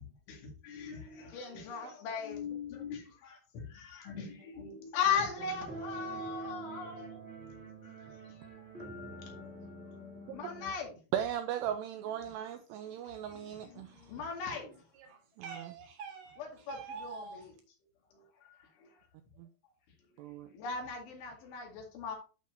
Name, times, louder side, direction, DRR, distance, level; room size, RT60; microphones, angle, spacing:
voice 1, 0.3-7.5 10.3-10.9 13.3-14.7 16.4-17.5 20.5-22.2, left 6 dB, 90° left, 4.6 m, -38 dB
sound 1, 5.3-10.7, right 2 dB, 5° left, 0.8 m, -45 dB
voice 2, 11.1-14.0 15.4-15.7 19.4-19.5 20.2-20.5, right 10 dB, 85° right, 2.4 m, -37 dB
voice 3, 14.9-17.5, right 5 dB, 65° right, 3.0 m, -46 dB
11.5 x 5.1 x 2.7 m
omnidirectional pair, 5.3 m